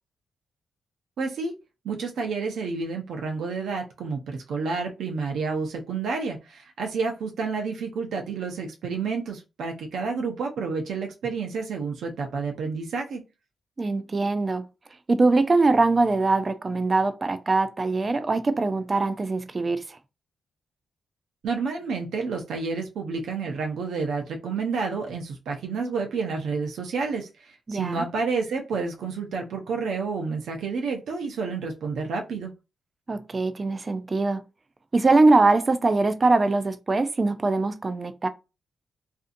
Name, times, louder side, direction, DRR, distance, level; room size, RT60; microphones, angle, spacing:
voice 1, 1.2-1.5 1.8-13.2 21.4-32.5, right 4 dB, 80° right, 0.6 m, -30 dB
voice 2, 13.8-14.7 15.1-20.0 27.7-28.1 33.1-34.4 34.9-38.3, right 3 dB, 35° right, 0.4 m, -22 dB
2.5 x 2.4 x 2.5 m
cardioid pair, 70°, 0 cm